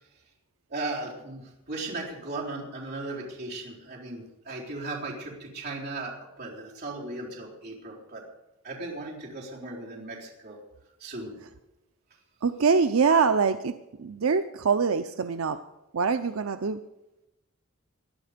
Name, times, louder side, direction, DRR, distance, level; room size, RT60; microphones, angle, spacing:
voice 1, 0.7-8.2 8.6-10.6 11.0-11.3, right 2 dB, 50° right, -3 dB, 3.9 m, -37 dB
voice 2, 12.4-15.6 15.9-16.8, right 5 dB, 80° right, 10 dB, 0.6 m, -24 dB
20.5 x 12.5 x 5.1 m, 0.98 s
head